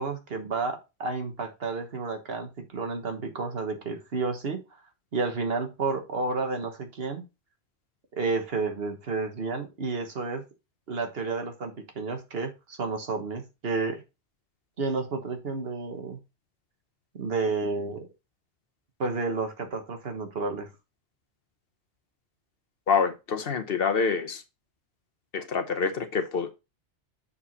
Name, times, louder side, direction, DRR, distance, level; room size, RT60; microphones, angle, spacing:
voice 1, 0.0-4.6 5.1-7.2 8.1-10.4 10.9-14.0 14.8-16.2 17.2-18.1 19.0-20.7, right 3 dB, 60° right, 1.4 m, -31 dB
voice 2, 22.9-24.4 25.3-26.5, left 5 dB, 55° left, 1.1 m, -26 dB
6.9 x 4.8 x 4.0 m
omnidirectional pair, 1.2 m